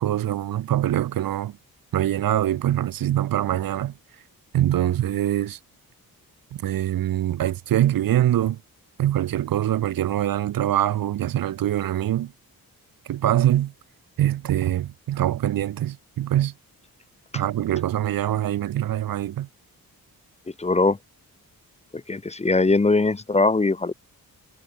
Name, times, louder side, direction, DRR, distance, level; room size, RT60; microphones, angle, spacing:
voice 1, 0.0-1.6 1.9-3.9 4.5-5.6 6.5-8.6 9.0-12.3 13.1-13.7 14.2-16.5 17.3-19.5, right 12 dB, 70° right, 0.7 m, -23 dB
voice 2, 20.6-21.0 22.1-23.9, left 3 dB, 20° left, 0.8 m, -20 dB
wide cardioid pair, 135°, 36 cm